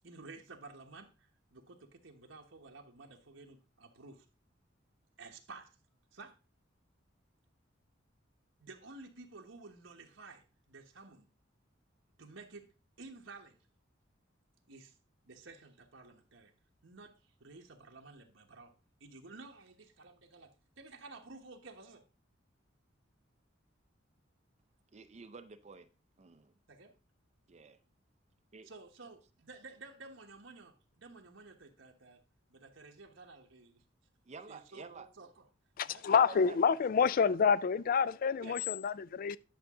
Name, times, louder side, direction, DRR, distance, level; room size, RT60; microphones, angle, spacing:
voice 1, 0.0-4.2 5.2-5.8 6.1-6.3 8.6-11.3 12.2-12.7 13.0-13.6 14.7-14.9 15.2-16.5 16.8-18.7 19.0-22.0 26.7-26.9 28.7-32.2 32.5-33.8 34.5-35.5 35.8-36.6 38.4-38.6, right 3 dB, 80° right, 1.3 m, -53 dB
voice 2, 24.9-25.9 26.2-26.5 27.5-27.8 28.5-28.7 34.3-35.1 36.1-36.6, right 4 dB, 35° right, 0.5 m, -50 dB
voice 3, 35.8-39.4, left 6 dB, 45° left, 0.3 m, -28 dB
10.5 x 6.6 x 3.7 m
head